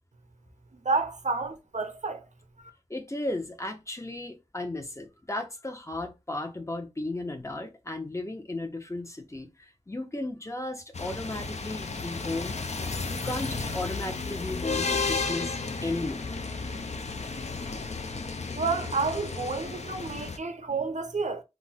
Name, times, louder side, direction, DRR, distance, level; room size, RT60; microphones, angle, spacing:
voice 1, 0.9-2.2 18.5-21.4, right 4 dB, 80° right, 0.5 m, -30 dB
voice 2, 2.9-12.5 13.1-16.2, left 2 dB, 25° left, 0.6 m, -35 dB
sound 1, 10.9-20.4, left 4 dB, 65° left, 0.4 m, -33 dB
2.4 x 2.1 x 3.9 m
wide cardioid pair, 45°, 12 cm